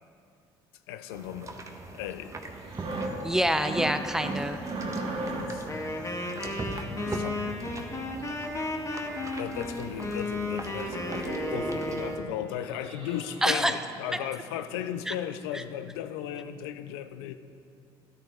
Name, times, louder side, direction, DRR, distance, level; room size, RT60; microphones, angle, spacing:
voice 1, 0.9-1.6 1.9-2.3 5.3-5.7 6.2-7.5 9.4-17.3, left 10 dB, 90° left, 11 dB, 0.5 m, -36 dB
sound 1, 1.1-12.2, right 2 dB, 25° right, 1.3 m, -42 dB
sound 2, 2.5-5.7 6.7-7.9 9.0-9.1 9.4-9.5 9.8-10.0 10.3-10.5 10.7-12.0 12.5-14.1 14.5-14.7, right 2 dB, 50° right, 2.2 m, -37 dB
voice 2, 3.2-4.6 13.4-13.7 14.1-14.2 15.1-15.2 15.5-15.6, equal, 5° right, 9 dB, 0.8 m, -26 dB
Wind instrument woodwind instrument, 5.7-12.3, left 2 dB, 25° left, 1.7 m, -34 dB
13.0 x 11.5 x 3.6 m, 2.4 s
supercardioid pair, 70°, 12 cm